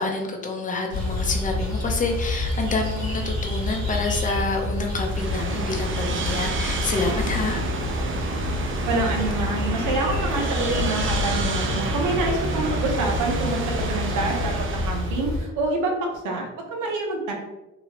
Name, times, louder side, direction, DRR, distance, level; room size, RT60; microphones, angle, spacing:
voice 1, 0.0-7.6, left 3 dB, 25° left, 2 dB, 0.7 m, -28 dB
sound 1, 0.9-15.4, left 2 dB, 65° right, 1.2 m, -28 dB
sound 2, 5.0-15.1, right 4 dB, 40° right, 0.5 m, -30 dB
voice 2, 8.9-14.5 14.9-17.3, right 2 dB, 85° right, 1 dB, 0.9 m, -27 dB
3.0 x 2.8 x 2.9 m, 1.0 s
cardioid pair, 90°, 30 cm